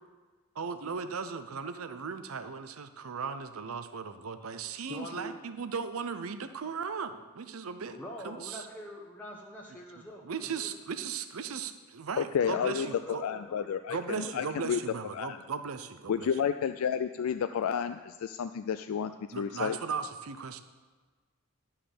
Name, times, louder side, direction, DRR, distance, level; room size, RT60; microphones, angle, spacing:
voice 1, 0.6-8.0 8.2-8.7 10.2-13.2 13.9-16.4 19.3-20.6, right 5 dB, 75° right, 10 dB, 0.6 m, -37 dB
voice 2, 4.9-5.4 7.9-10.7 12.5-14.4, equal, 10° left, -3 dB, 0.9 m, -45 dB
voice 3, 12.2-12.9 13.2-14.8 15.1-15.4 16.1-19.8, left 7 dB, 80° left, 9 dB, 0.4 m, -31 dB
11.5 x 5.7 x 6.7 m, 1.4 s
head